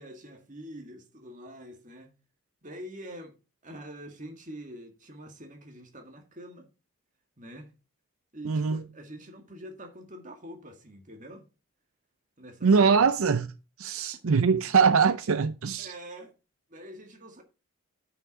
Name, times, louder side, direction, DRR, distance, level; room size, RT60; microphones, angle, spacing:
voice 1, 0.0-2.1 2.6-3.3 3.6-6.7 7.4-7.7 8.3-11.5 12.4-13.1 15.8-16.4 16.7-17.4, equal, 35° right, 1.9 m, -45 dB
voice 2, 8.4-8.8 12.6-13.5 13.8-15.9, right 5 dB, 75° right, 0.5 m, -22 dB
9.5 x 5.9 x 4.7 m
head